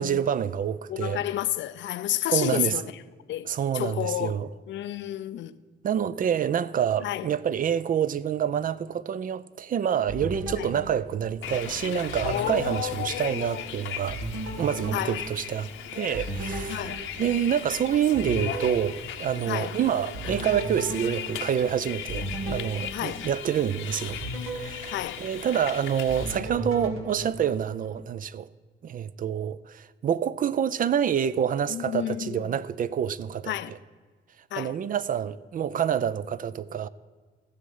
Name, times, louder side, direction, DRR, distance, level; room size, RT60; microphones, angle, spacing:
voice 1, 0.0-1.3 2.3-2.8 3.5-4.5 5.8-14.2 14.6-24.2 24.5-28.5 28.8-33.8 34.5-36.9, right 9 dB, 45° right, 0.4 m, -27 dB
voice 2, 0.9-2.8 3.3-4.4 4.7-5.5 7.0-7.3 10.6-10.7 12.2-13.6 14.9-15.2 16.7-17.0 19.5-19.7 22.9-23.3 24.9-25.2 31.7-32.4 33.5-33.7 34.5-34.7, left 13 dB, 70° left, 0.5 m, -30 dB
sound 1, 10.1-11.7 12.1-13.7 14.1-17.7 18.1-19.7 20.1-23.6 24.1-25.7 26.1-28.0, right 1 dB, 90° right, 1.8 m, -36 dB
Bus, 11.4-26.4, left 9 dB, 85° left, 1.0 m, -38 dB
15.0 x 6.5 x 5.5 m
cardioid pair, 90°, 20 cm